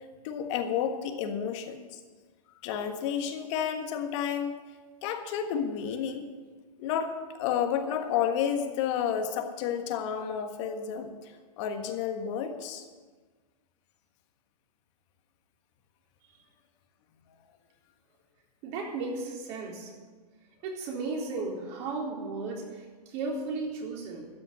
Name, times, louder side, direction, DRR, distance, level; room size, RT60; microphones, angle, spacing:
voice 1, 0.2-2.0 2.6-4.6 5.0-6.3 6.8-12.8, left 8 dB, 45° left, 6 dB, 1.5 m, -31 dB
voice 2, 18.6-19.9 20.6-24.3, right 3 dB, 40° right, -1 dB, 3.7 m, -35 dB
13.5 x 6.1 x 9.8 m, 1.4 s
hypercardioid pair, 130°, 20 cm